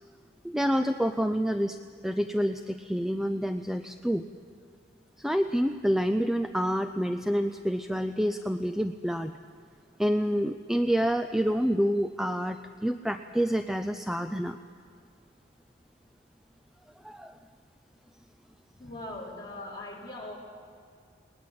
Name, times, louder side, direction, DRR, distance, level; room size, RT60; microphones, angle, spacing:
voice 1, 0.4-1.8 2.0-4.2 5.2-9.3 10.0-14.6 17.0-17.3, equal, ahead, 8 dB, 0.4 m, -28 dB
voice 2, 18.8-20.4, left 2 dB, 25° left, -5 dB, 4.6 m, -40 dB
21.5 x 19.0 x 7.7 m, 2.3 s
head